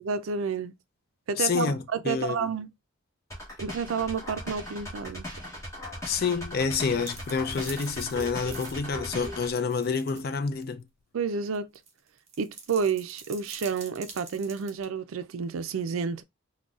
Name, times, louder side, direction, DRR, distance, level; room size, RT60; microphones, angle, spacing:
voice 1, 0.0-0.7 1.3-2.7 3.6-5.3 11.1-11.7 12.4-16.2, right 5 dB, 75° right, 0.4 m, -30 dB
voice 2, 1.4-2.5 6.0-10.8, left 5 dB, 45° left, 0.4 m, -28 dB
sound 1, 3.3-9.5, equal, 15° left, 1.1 m, -39 dB
sound 2, 6.7-10.2 10.6-10.7 11.5-14.9, right 5 dB, 35° right, 0.7 m, -46 dB
3.8 x 2.2 x 2.4 m
head